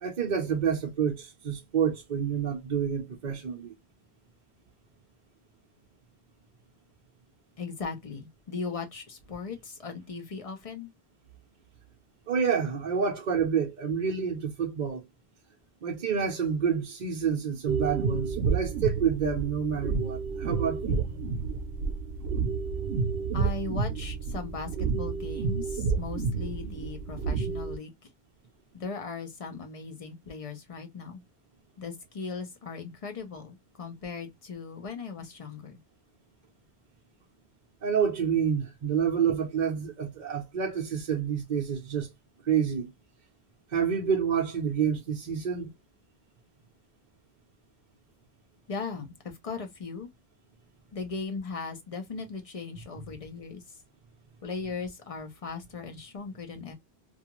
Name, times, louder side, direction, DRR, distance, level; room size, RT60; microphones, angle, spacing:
voice 1, 0.0-3.7 12.3-15.0 15.8-21.0 37.8-42.1 42.5-42.9 43.7-45.7, right 7 dB, 50° right, 0.7 m, -28 dB
voice 2, 7.6-10.9 23.3-27.9 28.7-31.2 31.8-35.8 48.7-50.1 50.9-53.6 54.4-56.7, left 4 dB, 40° left, 0.7 m, -38 dB
sound 1, 17.7-27.8, right 5 dB, 85° right, 0.8 m, -30 dB
2.4 x 2.4 x 2.8 m
omnidirectional pair, 1.1 m